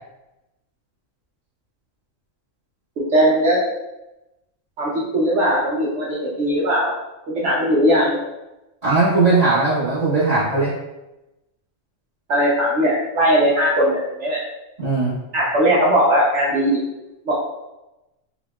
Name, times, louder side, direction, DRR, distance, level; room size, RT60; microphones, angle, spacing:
voice 1, 3.0-3.6 4.8-6.9 7.3-8.2 12.3-14.4 15.3-16.8 17.3-17.4, equal, 65° right, -6 dB, 1.0 m, -19 dB
voice 2, 8.8-10.7 14.8-15.1, right 3 dB, 30° right, -16 dB, 1.5 m, -18 dB
3.7 x 3.5 x 2.2 m, 0.97 s
omnidirectional pair, 1.4 m